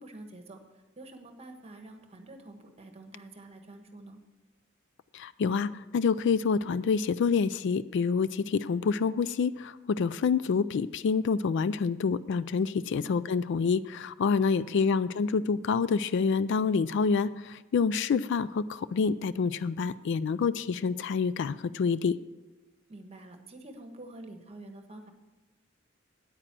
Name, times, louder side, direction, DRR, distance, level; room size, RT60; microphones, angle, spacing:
voice 1, 0.0-4.2 12.9-13.2 14.6-14.7 22.9-25.1, right 2 dB, 30° right, 5 dB, 1.2 m, -48 dB
voice 2, 5.1-22.2, left 5 dB, 60° left, 17 dB, 0.3 m, -27 dB
9.1 x 8.8 x 6.0 m, 1.1 s
head